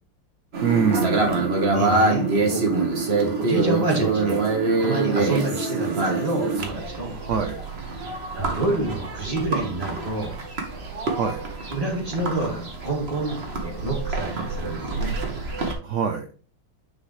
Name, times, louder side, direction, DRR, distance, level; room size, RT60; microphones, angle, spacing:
sound 1, 0.5-15.7, right 3 dB, 35° right, 1.4 m, -25 dB
voice 1, 0.6-1.6 7.1-7.6 11.2-11.4 15.8-16.3, right 7 dB, 85° right, 6 dB, 0.6 m, -25 dB
voice 2, 1.7-2.9 3.2-4.4 4.8-7.1 8.3-10.3 11.7-13.4 13.6-15.1, right 2 dB, 20° right, -2 dB, 2.5 m, -28 dB
9.6 x 5.6 x 3.2 m, 0.40 s
omnidirectional pair, 2.2 m